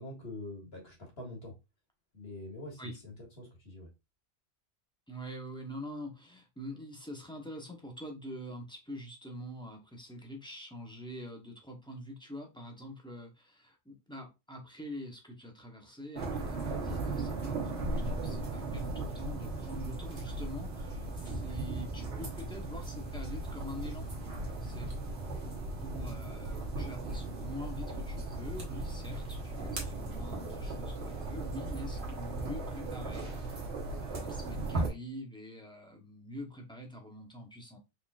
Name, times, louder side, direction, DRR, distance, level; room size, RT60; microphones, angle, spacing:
voice 1, 0.0-1.5 2.1-3.9, left 2 dB, 70° left, -1 dB, 2.1 m, -45 dB
voice 2, 5.1-24.1 24.6-24.9 25.8-33.3 34.0-37.8, equal, 5° left, 1 dB, 0.9 m, -45 dB
sound 1, 16.2-34.9, right 2 dB, 75° right, 1.6 m, -37 dB
4.5 x 3.8 x 2.4 m, 0.24 s
omnidirectional pair, 1.1 m